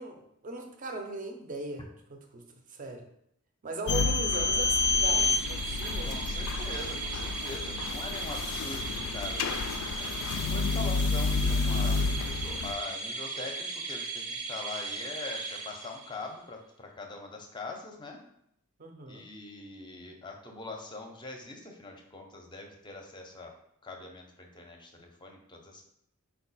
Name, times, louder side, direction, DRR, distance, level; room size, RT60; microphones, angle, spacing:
voice 1, 0.0-1.8 2.1-3.1 3.6-6.2 10.5-10.8 18.8-19.2, right 2 dB, 35° right, 5 dB, 0.5 m, -39 dB
sound 1, 3.9-12.7, left 4 dB, 70° left, 0.3 m, -29 dB
sound 2, 4.5-16.3, right 3 dB, 85° right, 0.7 m, -37 dB
voice 2, 6.0-18.2 19.1-23.6 23.8-25.9, left 3 dB, 20° left, 2 dB, 0.5 m, -43 dB
4.5 x 2.2 x 4.0 m, 0.76 s
head